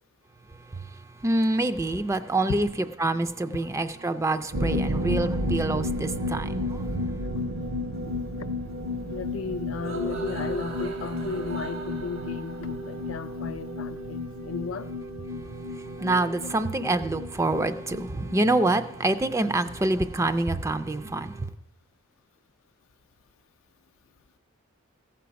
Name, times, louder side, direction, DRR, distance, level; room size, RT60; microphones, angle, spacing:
voice 1, 0.5-7.2 15.3-21.5, right 2 dB, 15° right, 0.3 m, -27 dB
sound 1, 1.9-21.5, right 3 dB, 80° right, 1.4 m, -42 dB
sound 2, 4.5-19.9 20.2-20.3 20.6-20.7, left 1 dB, 60° right, 0.6 m, -33 dB
voice 2, 8.0-8.5 9.1-14.9, left 4 dB, 70° left, 0.4 m, -35 dB
15.0 x 5.7 x 5.2 m
head